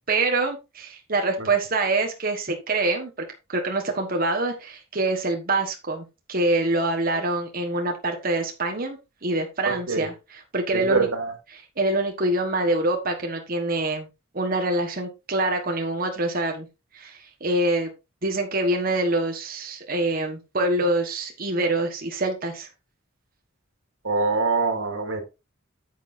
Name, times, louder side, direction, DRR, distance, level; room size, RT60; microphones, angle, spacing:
voice 1, 0.1-3.1 3.5-10.1 10.5-11.1 11.8-14.1 14.3-16.7 16.9-17.9 18.2-22.7, right 2 dB, 45° right, 1.4 m, -25 dB
voice 2, 9.6-10.1 10.7-11.3 24.0-25.2, right 4 dB, 85° right, 2.1 m, -24 dB
9.4 x 7.7 x 2.6 m
head